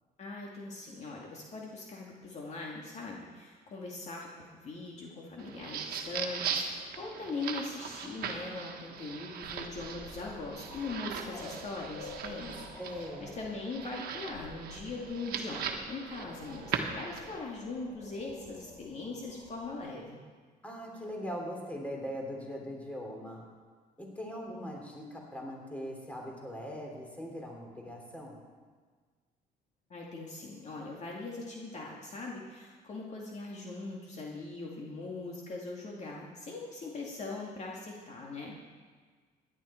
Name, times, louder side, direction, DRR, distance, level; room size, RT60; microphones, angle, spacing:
voice 1, 0.2-20.2 29.9-38.7, left 3 dB, 40° left, -2 dB, 2.3 m, -41 dB
sound 1, 5.4-17.4, right 6 dB, 65° right, 1.4 m, -39 dB
sound 2, 9.4-19.8, left 3 dB, 75° left, 4.4 m, -50 dB
voice 2, 12.8-13.4 20.6-23.4 24.0-28.4, equal, 10° left, -1 dB, 3.3 m, -41 dB
16.0 x 11.0 x 4.5 m, 1.5 s
cardioid pair, 110°, 17 cm